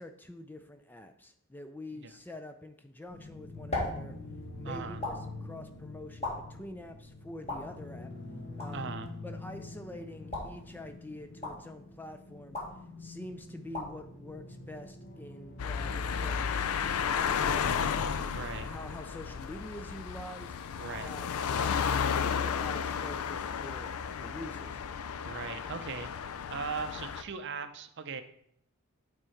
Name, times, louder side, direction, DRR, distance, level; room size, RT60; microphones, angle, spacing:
voice 1, 0.0-4.2 4.6-8.1 8.6-8.9 9.2-16.5 18.6-20.5 21.0-21.8 22.2-24.8, left 1 dB, 10° left, 7 dB, 0.3 m, -46 dB
sound 1, 3.0-15.2, left 2 dB, 30° left, 1.7 m, -42 dB
sound 2, 3.1-17.0, left 2 dB, 50° left, 1.0 m, -46 dB
voice 2, 4.6-5.0 8.7-9.1 18.2-18.7 20.8-21.1 25.3-26.1 26.5-28.2, right 5 dB, 50° right, 9 dB, 0.5 m, -39 dB
sound 3, 15.6-27.2, left 7 dB, 75° left, 0.4 m, -33 dB
9.0 x 3.7 x 4.5 m, 0.71 s
head